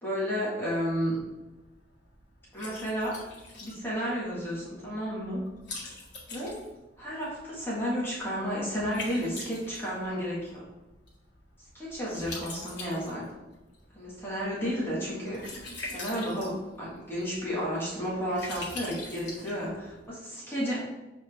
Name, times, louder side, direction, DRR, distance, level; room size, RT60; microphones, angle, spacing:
voice 1, 0.0-1.2 2.5-3.2 3.6-5.4 6.3-6.6 7.0-10.6 11.7-13.4 13.9-20.8, equal, 15° left, -7 dB, 1.6 m, -32 dB
Liquid, 0.6-20.1, left 2 dB, 80° left, 1.8 m, -45 dB
7.3 x 4.1 x 3.4 m, 1.1 s
head